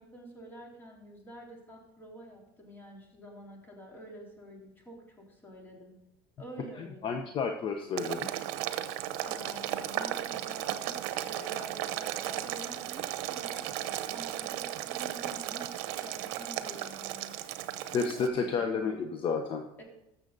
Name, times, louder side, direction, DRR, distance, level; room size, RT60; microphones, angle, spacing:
voice 1, 0.0-5.9 6.4-7.2 9.2-17.3 18.1-18.6 19.8-19.9, right 1 dB, 15° left, -1 dB, 3.6 m, -48 dB
voice 2, 7.0-8.3 17.9-19.6, left 5 dB, 45° left, 5 dB, 1.0 m, -31 dB
Boiling, 8.0-18.3, right 12 dB, 70° right, 0.8 m, -35 dB
14.0 x 6.8 x 4.1 m, 0.92 s
supercardioid pair, 110°, 13 cm